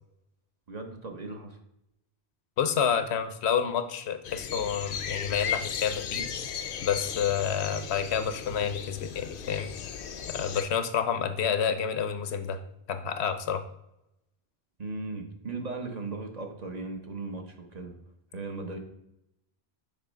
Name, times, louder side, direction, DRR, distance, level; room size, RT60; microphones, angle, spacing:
voice 1, 0.7-1.6 14.8-17.9 18.3-18.8, right 3 dB, 45° right, 3 dB, 0.9 m, -37 dB
voice 2, 2.6-6.3 6.8-9.7 10.3-12.6 12.9-13.6, left 7 dB, 90° left, 9 dB, 0.9 m, -29 dB
sound 1, 4.2-10.6, left 7 dB, 65° left, 0.7 m, -36 dB
6.7 x 3.1 x 5.1 m, 0.83 s
omnidirectional pair, 1.1 m